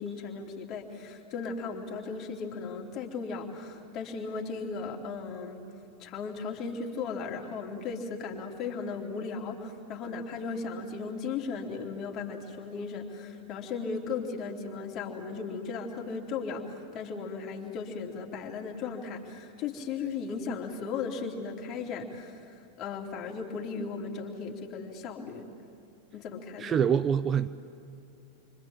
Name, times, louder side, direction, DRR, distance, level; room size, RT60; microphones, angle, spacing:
voice 1, 0.0-5.6 6.0-25.5 26.1-26.8, left 5 dB, 35° left, 1 dB, 3.1 m, -36 dB
voice 2, 26.6-27.5, right 8 dB, 25° right, 12 dB, 0.6 m, -25 dB
28.5 x 25.0 x 7.4 m, 2.5 s
figure-of-eight pair, 90°, 0 cm